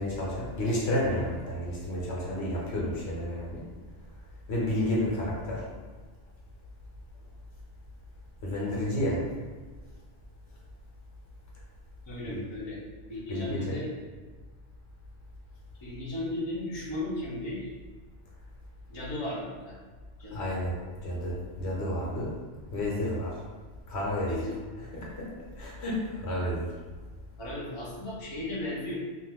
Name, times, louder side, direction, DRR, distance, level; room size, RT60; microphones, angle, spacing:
voice 1, 0.0-3.6 4.5-5.6 8.4-9.2 12.3-12.4 13.3-13.6 20.3-20.7 21.0-22.3 22.7-23.3 23.9-24.4 24.8-25.3 25.6-26.7, left 1 dB, 70° left, -5 dB, 1.1 m, -31 dB
voice 2, 12.0-12.8 13.1-13.9 15.8-17.7 18.9-19.8 20.2-20.5 24.2-24.6 27.4-28.9, left 1 dB, 30° left, -6 dB, 0.6 m, -35 dB
2.6 x 2.3 x 3.5 m, 1.4 s
omnidirectional pair, 1.1 m